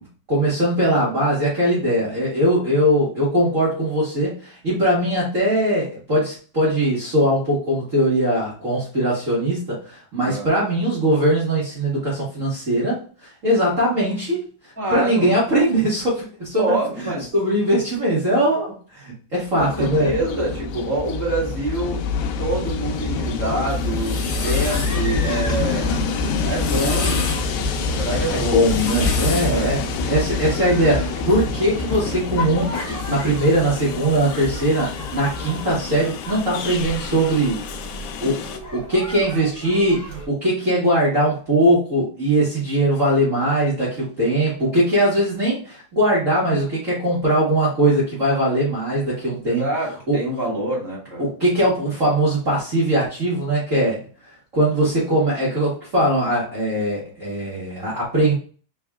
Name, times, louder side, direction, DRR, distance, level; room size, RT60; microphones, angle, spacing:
voice 1, 0.3-14.4 14.9-20.1 28.3-37.6 38.2-38.4 38.7-49.6 50.1-50.2 51.2-54.0 54.5-58.3, right 1 dB, 80° right, -8 dB, 0.7 m, -20 dB
voice 2, 14.8-15.3 16.6-17.3 19.5-22.0 22.4-25.9 26.5-27.2 27.9-28.7 29.5-29.8 38.2-38.4 49.5-51.2, right 1 dB, 10° left, -7 dB, 0.8 m, -26 dB
Train, 19.6-38.6, left 4 dB, 85° left, 2.3 m, -26 dB
sound 1, 23.7-25.0 26.4-27.5 28.5-29.6, left 5 dB, 65° left, 1.8 m, -30 dB
sound 2, 24.3-40.3, left 1 dB, 45° left, 1.1 m, -36 dB
5.4 x 3.4 x 2.3 m, 0.40 s
omnidirectional pair, 4.0 m